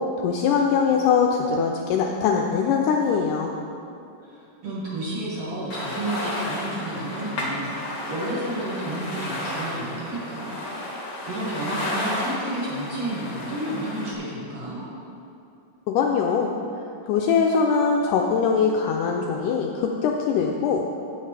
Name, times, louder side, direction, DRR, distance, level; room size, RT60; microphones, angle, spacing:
voice 1, 0.2-3.5 15.9-16.5 17.1-20.8, left 6 dB, 80° left, 1 dB, 1.9 m, -22 dB
voice 2, 4.2-10.5 10.9-14.8, right 1 dB, 50° right, -8 dB, 2.7 m, -31 dB
sound 1, 5.7-14.1, left 1 dB, 60° left, 1.5 m, -32 dB
16.0 x 5.6 x 3.3 m, 2.7 s
omnidirectional pair, 4.0 m